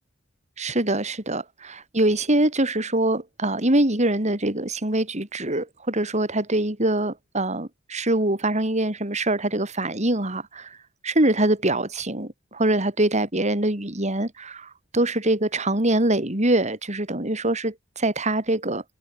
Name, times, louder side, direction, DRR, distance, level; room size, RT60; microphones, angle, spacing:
voice 1, 0.6-10.8 11.0-18.8, right 1 dB, 35° right, 4.2 m, -24 dB
head